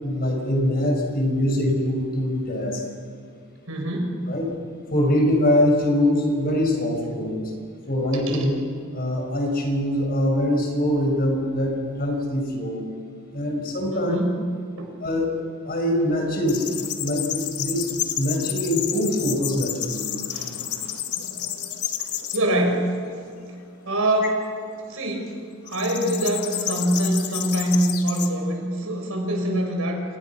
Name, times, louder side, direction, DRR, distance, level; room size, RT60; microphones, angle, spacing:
voice 1, 0.0-2.8 4.3-4.5 4.9-7.5 7.9-8.6 8.9-12.8 13.3-14.1 15.0-15.4 15.6-16.7 17.0-20.2, left 1 dB, 45° left, 1 dB, 6.3 m, -23 dB
voice 2, 3.7-4.2 8.3-8.4 13.9-14.3 14.8-14.9 20.3-21.5 22.3-22.8 23.8-24.4 24.9-25.3 25.7-30.0, right 1 dB, 65° right, 1 dB, 6.4 m, -24 dB
sound 1, 16.5-22.4 22.9-23.5 25.6-28.3, left 10 dB, 85° left, 2.1 m, -30 dB
29.0 x 28.0 x 6.2 m, 2.2 s
head